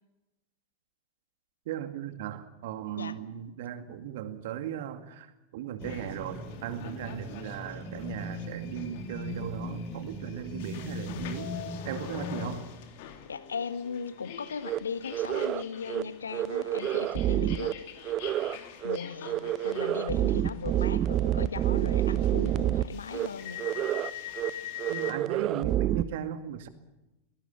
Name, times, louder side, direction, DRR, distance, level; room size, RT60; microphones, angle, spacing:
voice 1, 1.7-11.5 11.8-12.7 24.9-26.7, right 10 dB, 55° right, 9 dB, 2.2 m, -37 dB
sound 1, 5.8-25.1, left 9 dB, 50° left, 3.0 m, -45 dB
sound 2, 5.8-12.6, left 1 dB, 5° left, 4.0 m, -39 dB
voice 2, 13.2-17.7 18.8-23.6, left 6 dB, 70° left, 12 dB, 1.6 m, -38 dB
sound 3, 14.6-14.8 15.1-15.6 15.9-16.0 16.3-17.7 18.0-18.6 18.8-19.0 19.2-22.8 23.1-23.3 23.6-24.1 24.4-24.5 24.8-26.0, right 12 dB, 35° right, 0.8 m, -28 dB
23.0 x 19.5 x 7.1 m, 1.0 s
figure-of-eight pair, 90°, 0 cm